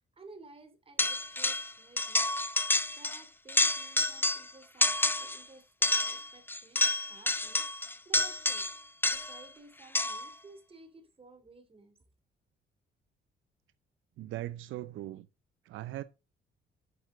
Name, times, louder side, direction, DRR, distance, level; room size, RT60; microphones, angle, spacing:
voice 1, 0.1-2.3 3.0-12.0, right 3 dB, 30° right, 2.9 m, -55 dB
sound 1, 1.0-1.7 2.0-3.2 3.5-4.5 4.8-5.4 5.8-9.4 9.9-10.3, left 2 dB, 10° left, 0.5 m, -29 dB
voice 2, 14.2-15.3 15.6-16.0, right 14 dB, 80° right, 0.5 m, -39 dB
9.7 x 6.6 x 3.8 m
cardioid pair, 90°, 20 cm